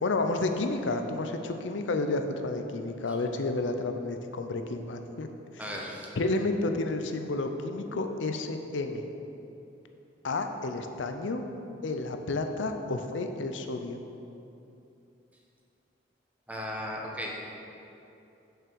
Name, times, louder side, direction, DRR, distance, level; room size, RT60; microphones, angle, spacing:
voice 1, 0.0-5.3 6.2-9.0 10.2-11.4 11.8-14.0, left 2 dB, 85° left, 6 dB, 0.6 m, -31 dB
voice 2, 5.6-6.1 16.5-17.3, equal, 10° right, -2 dB, 1.0 m, -36 dB
7.3 x 5.7 x 6.1 m, 2.8 s
head